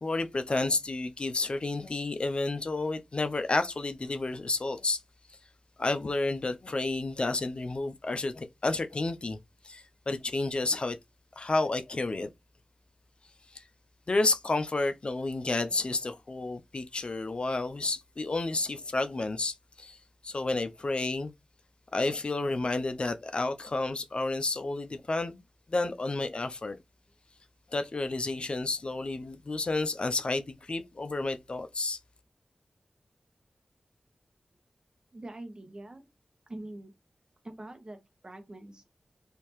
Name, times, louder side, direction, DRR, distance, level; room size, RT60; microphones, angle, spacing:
voice 1, 0.0-5.0 5.8-9.4 9.6-11.0 11.4-12.3 13.5-13.6 14.1-20.0 20.2-21.3 21.9-25.4 25.7-26.8 27.7-32.0, left 2 dB, 55° left, 0.5 m, -31 dB
voice 2, 35.1-36.1 36.5-36.9 37.4-38.9, right 1 dB, 40° right, 1.0 m, -44 dB
3.4 x 2.7 x 3.0 m
cardioid pair, 45°, 2 cm